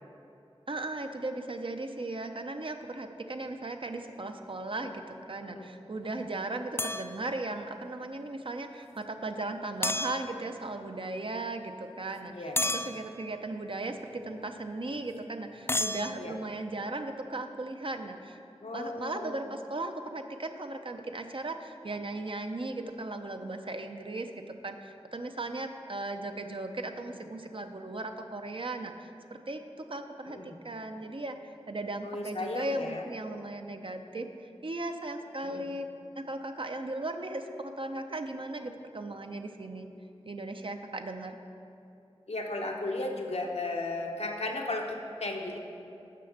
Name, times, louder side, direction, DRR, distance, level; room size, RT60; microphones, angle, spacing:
voice 1, 0.7-18.4 18.7-24.3 24.6-35.9 36.2-39.9 40.3-41.4, right 2 dB, 55° right, 6 dB, 0.6 m, -37 dB
sound 1, 6.8-7.1 9.8-10.3 12.6-12.9 15.7-16.1, left 2 dB, 20° left, 0.3 m, -30 dB
voice 2, 18.6-19.5 27.1-27.2 30.3-30.6 32.0-33.0 35.4-35.7 42.3-45.6, left 2 dB, 75° left, 1 dB, 0.9 m, -35 dB
7.5 x 5.7 x 6.5 m, 2.8 s
wide cardioid pair, 55°, 11 cm